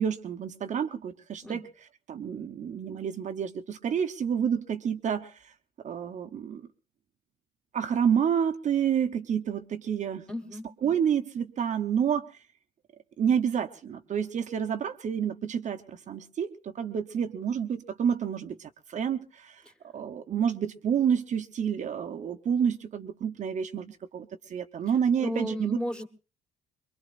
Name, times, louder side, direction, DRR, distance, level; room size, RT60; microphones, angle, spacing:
voice 1, 0.0-1.6 2.1-5.5 5.8-6.6 7.7-10.2 10.8-12.3 13.2-19.6 19.9-25.8, right 8 dB, 45° right, 6 dB, 0.9 m, -29 dB
voice 2, 10.3-10.7 25.2-26.1, left 1 dB, 5° left, 5 dB, 1.4 m, -33 dB
23.0 x 23.0 x 2.5 m, 0.35 s
cardioid pair, 110°, 17 cm